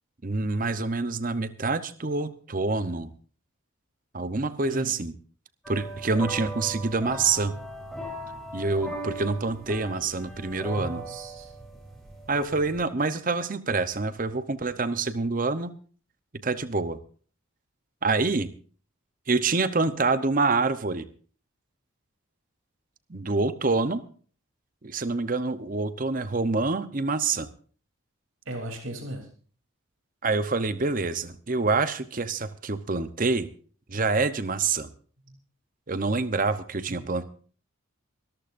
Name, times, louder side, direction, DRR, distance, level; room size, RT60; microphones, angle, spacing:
voice 1, 0.2-3.1 4.1-5.1 5.7-7.5 8.5-11.0 12.3-15.7 16.4-17.0 18.0-18.5 19.3-21.0 23.1-24.0 24.8-27.5 30.2-33.5 33.9-34.9 35.9-37.2, right 3 dB, 40° right, 12 dB, 0.8 m, -26 dB
sound 1, 5.6-12.9, right 1 dB, ahead, 3.8 m, -38 dB
voice 2, 10.7-11.5 28.5-29.3 35.3-35.4 36.9-37.1, right 1 dB, 70° right, 2 dB, 3.3 m, -37 dB
23.5 x 14.0 x 2.6 m, 0.41 s
head